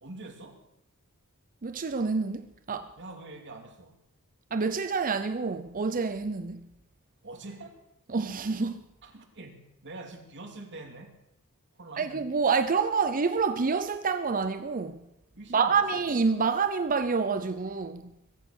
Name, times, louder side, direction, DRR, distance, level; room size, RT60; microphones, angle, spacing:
voice 1, 0.0-0.6 3.0-4.0 7.2-7.8 9.0-11.2 11.7-12.1 15.3-16.0, right 2 dB, 55° right, 2.6 m, -45 dB
voice 2, 1.6-2.9 4.5-6.6 8.1-8.8 12.0-15.0 15.5-18.1, right 5 dB, 40° right, 0.7 m, -27 dB
22.5 x 8.4 x 6.5 m
head